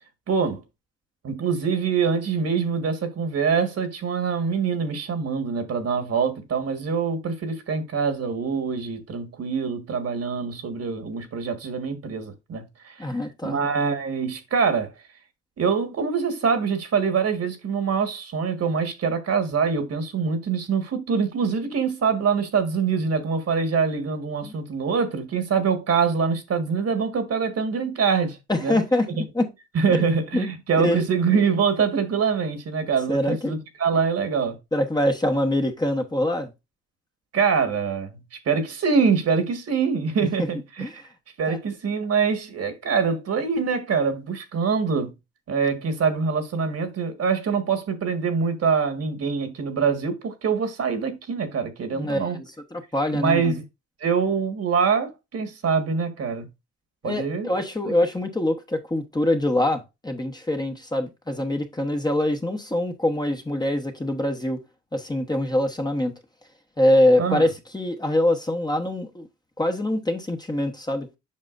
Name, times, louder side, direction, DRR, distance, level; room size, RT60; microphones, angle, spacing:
voice 1, 0.3-0.6 1.2-13.1 13.4-14.9 15.6-28.8 29.2-29.3 29.7-34.6 37.3-38.2 38.4-41.0 41.4-45.1 45.5-52.4 53.1-53.6 54.0-56.5 57.0-57.5 57.8-57.9 67.2-67.5, right 5 dB, 55° right, 1.6 m, -24 dB
voice 2, 13.0-13.6 24.4-24.5 28.5-29.1 29.3-29.5 30.3-30.5 30.8-31.1 33.1-33.5 34.7-36.5 40.2-40.5 40.8-40.9 41.5-41.6 51.9-52.5 52.7-53.6 57.0-64.6 64.9-66.1 66.8-69.3 69.6-71.1, left 1 dB, 15° left, 1.1 m, -24 dB
7.6 x 5.3 x 2.5 m
cardioid pair, 90°, 30 cm